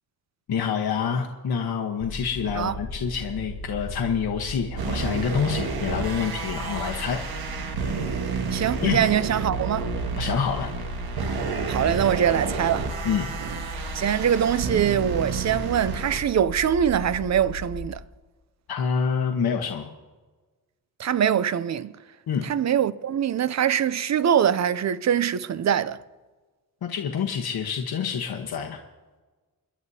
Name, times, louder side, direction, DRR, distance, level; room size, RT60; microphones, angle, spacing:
voice 1, 0.5-7.2 8.8-9.0 10.2-10.7 13.0-13.3 18.7-19.9 22.3-22.5 26.8-28.8, left 7 dB, 85° left, 1.1 m, -27 dB
sound 1, 2.0-17.8, left 1 dB, 5° left, 1.4 m, -37 dB
sound 2, 4.8-16.2, right 5 dB, 90° right, 1.5 m, -30 dB
voice 2, 8.5-9.9 11.7-12.9 13.4-13.6 13.9-18.0 21.0-21.9 22.4-26.0, right 9 dB, 50° right, 0.5 m, -23 dB
30.0 x 11.0 x 2.8 m
wide cardioid pair, 150°, 36 cm